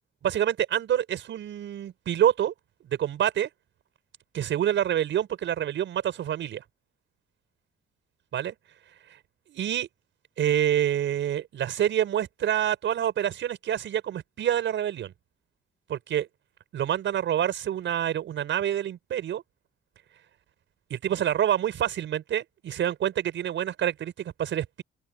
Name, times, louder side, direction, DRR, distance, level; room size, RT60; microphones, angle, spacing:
voice 1, 0.2-2.5 2.9-3.5 4.3-6.6 8.3-8.5 9.5-9.9 10.4-15.1 15.9-16.3 16.7-19.4 20.9-24.8, right 10 dB, 70° right, 5.8 m, -27 dB
open air
cardioid pair, 90°, 20 cm